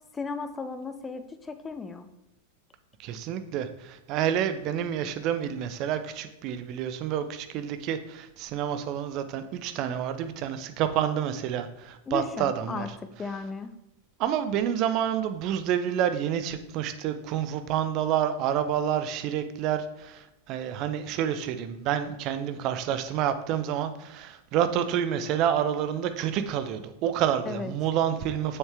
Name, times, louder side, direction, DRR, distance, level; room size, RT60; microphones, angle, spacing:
voice 1, 0.1-2.1 12.1-12.9 13.2-13.7 27.4-27.7, left 4 dB, 15° left, 9 dB, 0.6 m, -35 dB
voice 2, 3.0-12.9 14.2-28.6, right 9 dB, 40° right, 10 dB, 0.6 m, -28 dB
7.2 x 6.6 x 3.3 m, 0.91 s
figure-of-eight pair, 90°, 0 cm